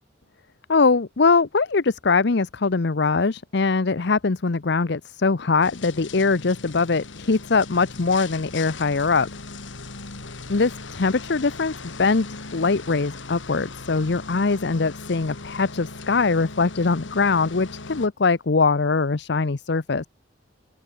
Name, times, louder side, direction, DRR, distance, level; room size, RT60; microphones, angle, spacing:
voice 1, 0.7-9.3 10.5-11.7 12.0-12.3 12.5-20.1, left 4 dB, 65° left, 0.8 m, -22 dB
sound 1, 5.6-18.1, left 3 dB, 85° left, 2.3 m, -39 dB
open air
head